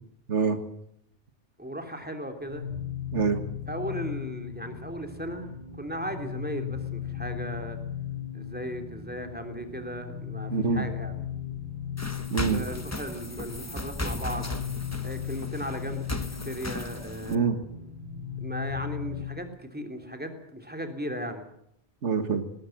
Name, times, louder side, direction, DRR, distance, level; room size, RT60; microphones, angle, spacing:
voice 1, 0.3-0.6 3.1-3.4 10.5-10.9 12.3-12.6 17.3-17.6 22.0-22.4, right 5 dB, 85° right, 9 dB, 1.9 m, -25 dB
voice 2, 1.6-2.6 3.7-5.5 5.8-7.8 8.3-11.1 12.4-14.6 15.0-17.5 18.4-21.5, equal, 10° right, 5 dB, 3.0 m, -36 dB
sound 1, 2.4-19.4, left 8 dB, 45° right, 4.3 m, -37 dB
sound 2, 12.0-17.4, left 1 dB, 15° left, 1.0 m, -36 dB
20.0 x 19.0 x 7.8 m, 0.75 s
omnidirectional pair, 1.2 m